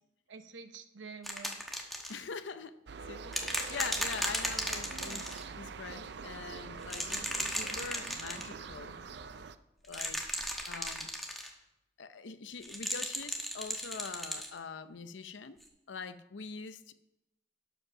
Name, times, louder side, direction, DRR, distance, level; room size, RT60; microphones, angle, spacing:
voice 1, 0.3-1.6 4.8-5.2, right 4 dB, 85° right, 0.8 m, -48 dB
sound 1, 1.2-2.2 3.3-5.4 6.8-8.5 9.8-11.5 12.6-14.5 15.6-15.7, equal, ahead, 1.1 m, -36 dB
voice 2, 2.1-2.7 3.1-9.0 9.8-10.2 10.7-11.1 12.0-15.6 15.9-16.9, left 5 dB, 80° left, 0.6 m, -43 dB
sound 2, 2.9-9.6, right 5 dB, 60° right, 0.5 m, -44 dB
12.0 x 5.4 x 6.1 m
head